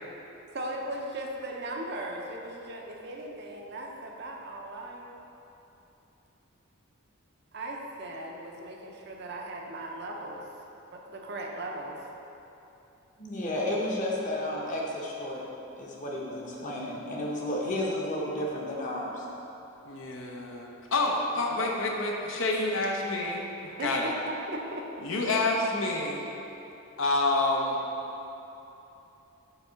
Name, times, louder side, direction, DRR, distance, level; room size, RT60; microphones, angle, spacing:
voice 1, 0.5-5.0 7.5-10.5 10.9-12.0 21.5-21.7 23.6-25.0, right 1 dB, 50° right, 0 dB, 0.7 m, -38 dB
voice 2, 13.2-15.4 15.8-19.2, left 1 dB, 35° left, -3 dB, 1.0 m, -32 dB
voice 3, 19.8-23.4 23.8-24.1 25.0-26.3 27.0-27.8, left 2 dB, 65° left, 0 dB, 0.8 m, -28 dB
6.8 x 3.5 x 5.6 m, 3.0 s
head